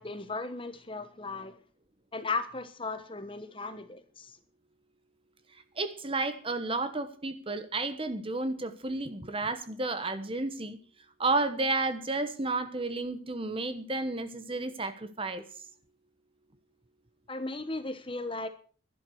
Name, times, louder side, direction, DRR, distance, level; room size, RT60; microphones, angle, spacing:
voice 1, 0.0-1.6 2.1-4.3 17.3-18.5, left 3 dB, 25° left, 1.1 m, -36 dB
voice 2, 5.8-10.8 11.2-15.4, right 2 dB, 25° right, 1.1 m, -32 dB
12.0 x 11.5 x 6.4 m
head